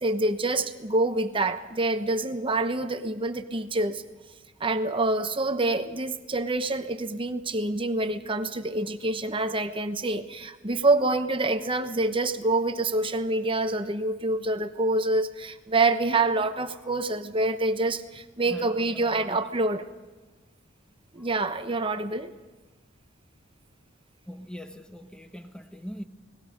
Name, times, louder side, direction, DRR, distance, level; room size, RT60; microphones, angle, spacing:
voice 1, 0.0-4.0 4.6-19.8 21.1-22.3, right 2 dB, 25° right, 9 dB, 1.0 m, -26 dB
voice 2, 18.4-19.5 21.2-21.3 24.3-26.0, equal, 5° left, 7 dB, 1.3 m, -41 dB
29.5 x 20.5 x 5.3 m, 1.2 s
head